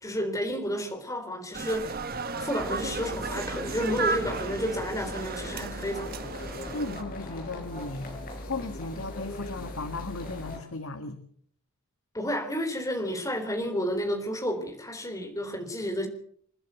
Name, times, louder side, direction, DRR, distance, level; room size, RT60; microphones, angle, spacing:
voice 1, 0.0-2.0 2.4-6.3 12.1-16.1, equal, 15° left, 5 dB, 3.8 m, -31 dB
sound 1, 1.5-7.0, right 4 dB, 45° right, 1.3 m, -34 dB
sound 2, 2.6-10.6, left 1 dB, 40° left, 5.6 m, -40 dB
voice 2, 6.7-8.1 8.4-11.2, left 3 dB, 70° left, 7 dB, 1.7 m, -36 dB
28.5 x 11.5 x 8.3 m, 0.64 s
head